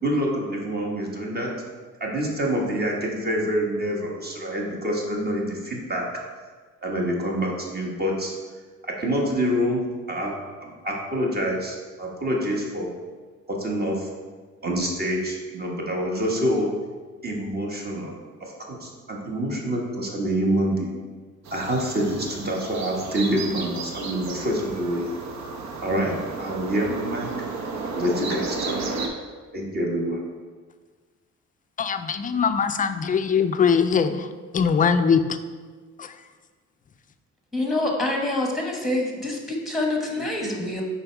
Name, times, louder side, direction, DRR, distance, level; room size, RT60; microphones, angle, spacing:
voice 1, 0.0-1.5 2.0-6.1 6.8-8.3 8.8-9.8 10.1-10.4 10.6-12.9 13.5-14.1 14.6-16.7 17.2-18.1 18.4-20.9 21.5-25.1 25.8-27.3 27.9-28.8 29.5-30.2 40.1-40.6, equal, 30° right, -1 dB, 1.3 m, -26 dB
sound 1, 21.4-29.1, right 4 dB, 65° right, 0.9 m, -33 dB
voice 2, 31.8-34.3 34.5-35.2 36.0-36.1, left 6 dB, 30° left, 10 dB, 0.4 m, -21 dB
voice 3, 37.5-40.8, left 2 dB, ahead, 0 dB, 1.2 m, -26 dB
5.2 x 4.2 x 4.6 m, 1.5 s
cardioid pair, 90°, 30 cm